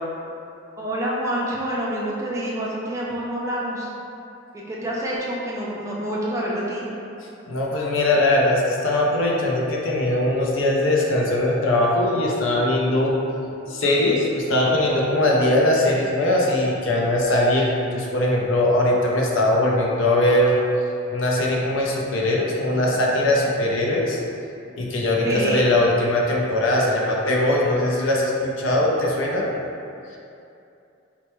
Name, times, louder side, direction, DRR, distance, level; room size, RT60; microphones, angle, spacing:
voice 1, 0.8-3.9 4.5-6.8 25.2-25.6, right 1 dB, 15° right, -5 dB, 0.4 m, -27 dB
voice 2, 7.5-13.2 13.6-20.5 21.1-24.2 24.8-29.5, left 1 dB, 80° left, -2 dB, 0.5 m, -21 dB
4.3 x 2.2 x 3.0 m, 2.7 s
head